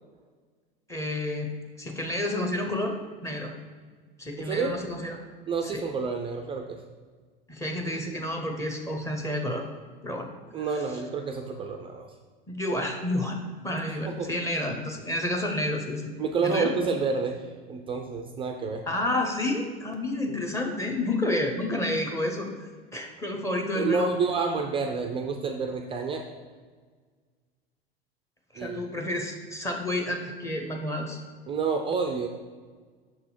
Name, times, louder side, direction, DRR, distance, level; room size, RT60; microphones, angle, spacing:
voice 1, 0.9-1.5 1.8-3.0 3.2-3.5 4.2-5.2 5.6-5.8 7.5-9.7 10.0-10.3 10.6-10.7 12.5-13.4 13.6-16.1 16.4-16.7 18.9-22.5 22.9-24.1 28.5-31.2, left 1 dB, 10° left, 2 dB, 0.9 m, -30 dB
voice 2, 4.4-4.8 5.5-6.8 10.5-12.1 14.1-14.3 16.2-18.9 23.7-26.3 28.6-28.8 31.5-32.3, right 4 dB, 20° right, 4 dB, 0.3 m, -29 dB
6.3 x 4.0 x 4.4 m, 1.5 s
figure-of-eight pair, 85°, 30 cm